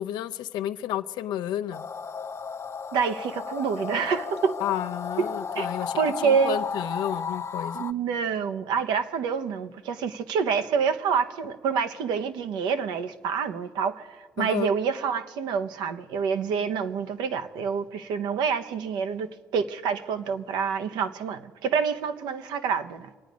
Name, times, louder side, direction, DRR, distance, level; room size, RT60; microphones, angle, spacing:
voice 1, 0.0-1.9 4.6-7.8 14.4-14.7, left 12 dB, 80° left, 0.5 m, -31 dB
sound 1, 1.7-7.9, left 5 dB, 40° left, 0.6 m, -34 dB
voice 2, 2.9-4.6 5.2-5.7 6.0-6.6 7.7-23.2, right 6 dB, 85° right, 0.8 m, -27 dB
25.0 x 9.3 x 5.1 m
supercardioid pair, 65°, 7 cm